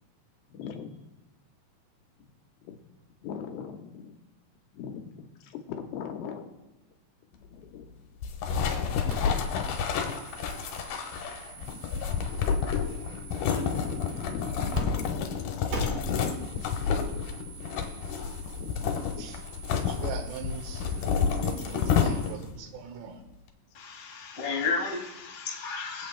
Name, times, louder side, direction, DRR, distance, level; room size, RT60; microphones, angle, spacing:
voice 1, 0.5-0.9 2.6-2.8 3.2-4.1 4.7-6.5 7.3-8.0 9.2-9.8 11.6-11.8 12.8-15.1 16.0-17.4 18.4-19.2, left 7 dB, 85° left, 5 dB, 3.2 m, -41 dB
sound 1, 8.2-22.6, left 6 dB, 70° left, 2.6 m, -30 dB
sound 2, 8.5-8.8 9.1-14.8 15.1-15.2 15.7-22.3, right 2 dB, 55° right, 3.3 m, -42 dB
voice 2, 19.7-23.2, right 7 dB, 85° right, 7 dB, 3.1 m, -41 dB
voice 3, 23.7-26.1, left 4 dB, 30° left, 1 dB, 1.9 m, -32 dB
24.5 x 8.2 x 2.3 m, 1.0 s
omnidirectional pair, 4.8 m